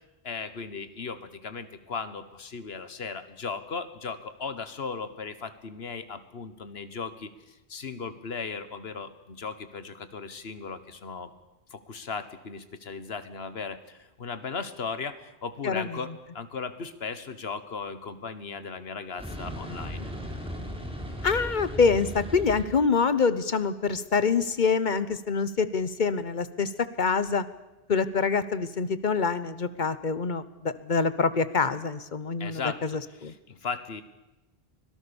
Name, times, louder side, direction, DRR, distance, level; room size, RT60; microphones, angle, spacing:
voice 1, 0.2-11.3 11.7-20.1 32.4-32.8 33.2-34.0, left 5 dB, 70° left, 12 dB, 1.6 m, -37 dB
voice 2, 15.6-16.0 21.2-27.5 27.9-33.3, left 5 dB, 50° left, 14 dB, 1.0 m, -26 dB
sound 1, 19.2-22.6, equal, 5° right, 3.7 m, -36 dB
24.5 x 17.5 x 7.0 m, 1.0 s
omnidirectional pair, 1.1 m